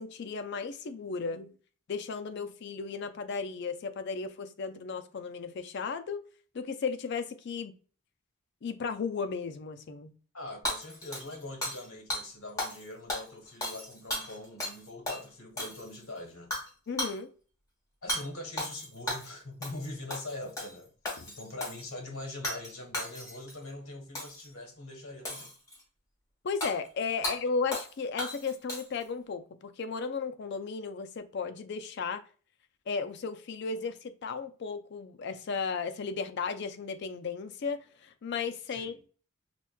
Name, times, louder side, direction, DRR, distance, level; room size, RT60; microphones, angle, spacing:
voice 1, 0.0-1.5 1.9-6.2 6.5-7.7 8.6-10.1 16.9-17.3 21.2-21.3 26.4-32.2 32.9-39.1, left 5 dB, 50° left, 0.4 m, -35 dB
voice 2, 10.3-16.5 18.0-20.9 21.3-25.5 38.7-39.0, left 2 dB, 65° left, 1.1 m, -42 dB
Hammer / Shatter, 10.6-11.8 12.1-12.2 12.6-12.8 13.1-14.8 15.1-15.2 15.6-16.0 16.5-16.7 17.0-17.2 18.1-18.2 18.6-19.3 19.6-19.8 20.1-20.7 21.0-21.8 22.4-22.7 22.9-23.5 24.1-24.5 25.2-25.8 26.6-26.7 27.2-27.4 27.7-27.9 28.2-29.0, left 1 dB, 15° left, 1.1 m, -35 dB
5.8 x 2.2 x 2.2 m
head